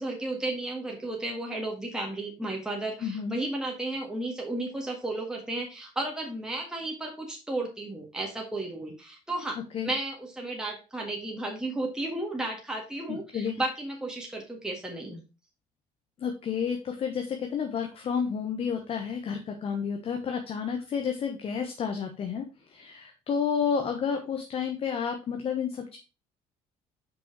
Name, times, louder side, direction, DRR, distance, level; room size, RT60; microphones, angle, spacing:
voice 1, 0.0-15.2, right 2 dB, 5° right, -1 dB, 1.6 m, -33 dB
voice 2, 3.0-3.4 9.6-9.9 13.1-13.6 16.2-26.0, left 6 dB, 45° left, 5 dB, 1.1 m, -31 dB
5.7 x 5.4 x 4.6 m, 0.31 s
cardioid pair, 115°, 14 cm